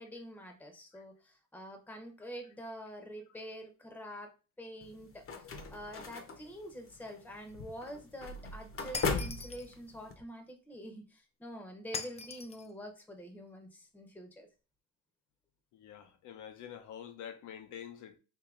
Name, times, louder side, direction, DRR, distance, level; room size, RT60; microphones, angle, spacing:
voice 1, 0.0-4.3 4.6-5.2 5.7-14.5, equal, 5° left, 0.8 m, -46 dB
sound 1, 4.8-10.1, left 4 dB, 45° left, 0.8 m, -39 dB
Shatter, 8.9-9.7 11.9-12.7, left 5 dB, 20° left, 0.4 m, -41 dB
voice 2, 15.7-18.2, left 9 dB, 80° left, 0.7 m, -47 dB
4.7 x 2.8 x 2.4 m
cardioid pair, 90°, 30 cm